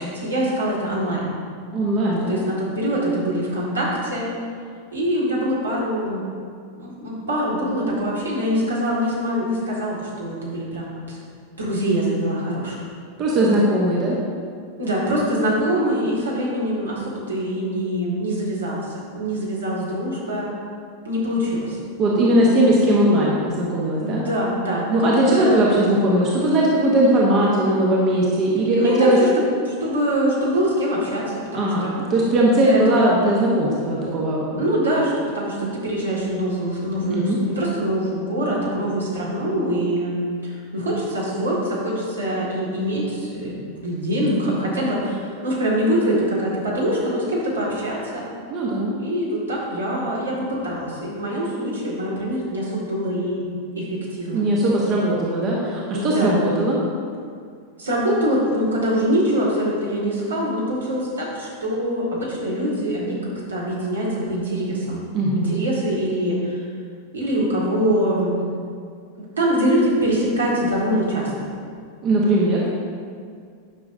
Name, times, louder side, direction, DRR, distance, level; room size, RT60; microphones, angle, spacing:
voice 1, 0.0-1.3 2.3-4.3 4.9-6.2 6.8-11.2 11.6-12.8 14.8-20.5 21.0-21.8 24.0-25.6 28.8-29.3 29.7-31.9 32.6-33.0 34.6-48.3 49.0-53.5 53.8-54.5 55.9-56.3 57.8-65.0 65.3-66.6 67.1-68.4 69.2-71.5, equal, 70° right, -5 dB, 1.9 m, -24 dB
voice 2, 1.7-2.4 13.2-14.2 22.0-24.2 24.9-29.2 31.5-34.8 37.1-37.4 48.5-48.9 54.3-56.8 65.1-65.5 72.0-72.6, right 1 dB, 35° right, -4 dB, 1.1 m, -19 dB
9.5 x 6.0 x 2.7 m, 2.2 s
figure-of-eight pair, 90°, 0 cm